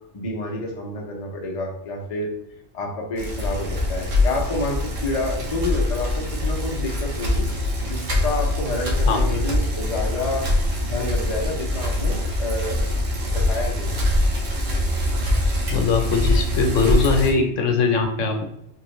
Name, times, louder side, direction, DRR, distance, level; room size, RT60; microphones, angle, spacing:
voice 1, 0.1-2.3 2.7-7.5 7.8-14.0, left 2 dB, 40° left, 0 dB, 0.6 m, -29 dB
Bicycle, 3.2-17.3, left 1 dB, 75° right, 1.2 m, -23 dB
voice 2, 9.1-9.4 15.7-18.5, left 4 dB, 75° left, 4 dB, 1.0 m, -21 dB
3.5 x 2.9 x 3.1 m, 0.74 s
omnidirectional pair, 1.3 m